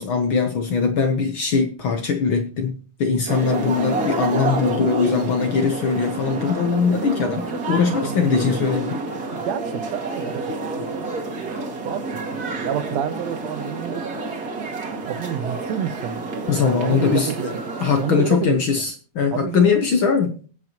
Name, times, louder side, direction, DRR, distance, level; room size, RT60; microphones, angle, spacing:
voice 1, 0.0-9.0 16.5-17.3 17.8-20.4, left 5 dB, 65° left, 1.3 m, -21 dB
sound 1, 3.3-18.4, right 3 dB, 35° right, 2.1 m, -29 dB
voice 2, 9.3-11.0 11.8-14.0 14.9-16.5 16.8-17.6 18.0-18.7 19.3-19.9, right 9 dB, 70° right, 1.9 m, -29 dB
22.5 x 8.1 x 3.0 m
omnidirectional pair, 3.5 m